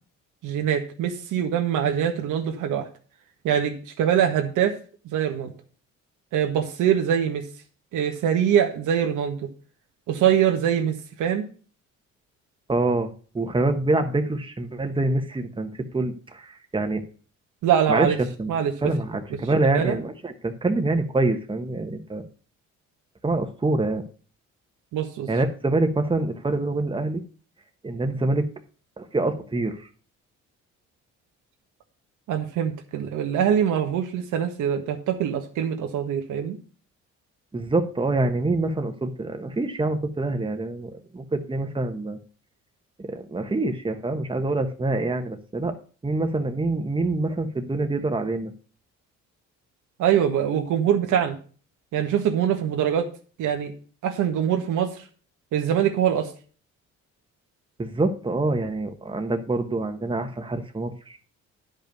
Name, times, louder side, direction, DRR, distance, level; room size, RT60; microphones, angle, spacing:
voice 1, 0.4-2.9 3.4-4.7 5.0-5.5 6.3-7.4 7.9-9.4 10.1-11.5 17.6-18.2 18.5-18.7 19.7-20.0 24.9-25.3 32.3-36.6 50.0-51.4 51.9-53.1 53.4-53.7 54.0-54.9 55.5-56.3, right 9 dB, 85° right, 1.6 m, -23 dB
voice 2, 12.7-17.0 17.9-18.5 18.8-22.3 23.2-24.0 25.3-27.2 27.8-28.5 29.0-29.9 37.5-42.2 43.0-45.8 46.0-48.5 57.8-61.2, right 2 dB, 15° right, 1.3 m, -25 dB
10.0 x 5.5 x 5.3 m
cardioid pair, 90°, 30 cm